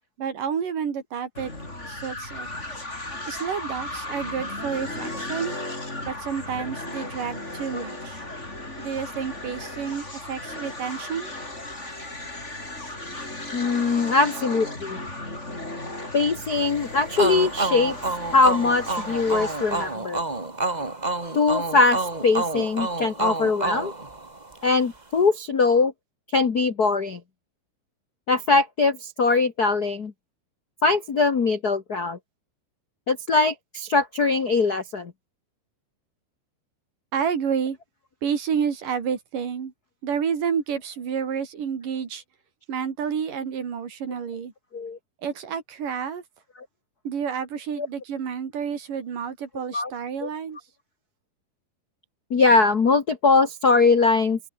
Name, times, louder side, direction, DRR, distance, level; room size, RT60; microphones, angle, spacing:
voice 1, 0.2-1.5 1.8-2.5 3.3-5.6 6.0-8.2 8.8-11.3 37.1-37.8 38.2-39.7 40.0-42.2 42.7-44.5 45.2-46.2 47.0-50.6, right 7 dB, 55° right, 4.4 m, -29 dB
sound 1, 1.3-20.0, left 2 dB, 15° left, 6.5 m, -36 dB
voice 2, 13.5-15.0 16.1-18.0 18.3-20.2 21.3-23.9 24.6-25.9 26.3-27.2 28.3-30.1 30.8-32.2 33.1-35.1 44.7-45.0 47.8-47.9 49.7-49.9 50.2-50.3 52.3-54.4, left 4 dB, 70° left, 0.9 m, -21 dB
sound 2, 17.2-24.7, right 2 dB, 20° right, 1.3 m, -28 dB
open air
omnidirectional pair, 4.6 m